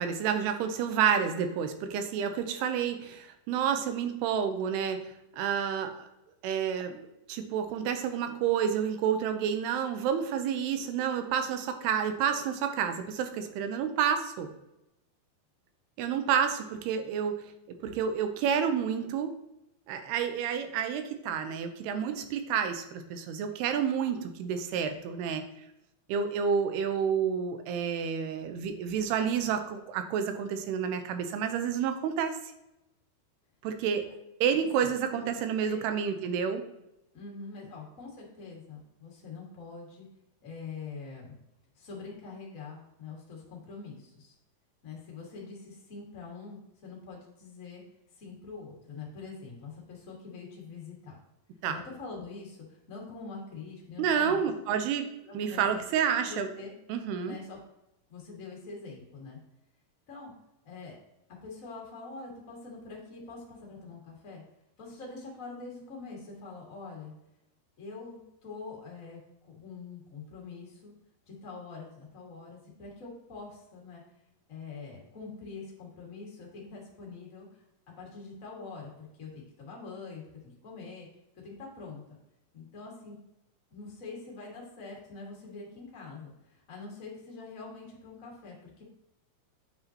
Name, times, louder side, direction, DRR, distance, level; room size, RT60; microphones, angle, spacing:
voice 1, 0.0-6.1 6.4-14.5 16.0-17.3 17.8-19.4 19.9-25.4 26.1-32.4 33.6-34.1 34.4-36.6 51.6-51.8 54.0-55.1 55.3-56.5 56.9-57.4, right 7 dB, 90° right, 8 dB, 2.8 m, -29 dB
voice 2, 35.4-35.8 37.1-40.1 40.4-41.3 41.7-44.3 44.8-47.8 48.1-51.2 51.7-54.9 55.3-55.8 56.2-56.7 57.2-57.6 58.1-59.4 60.1-60.3 60.6-61.0 61.4-64.4 64.8-67.1 67.8-70.9 71.2-74.0 74.5-77.6 78.0-80.2 80.6-81.1 81.4-82.0 82.5-83.2 83.7-88.8, left 4 dB, 35° left, -2 dB, 1.3 m, -44 dB
9.0 x 5.7 x 2.9 m, 0.88 s
omnidirectional pair, 4.5 m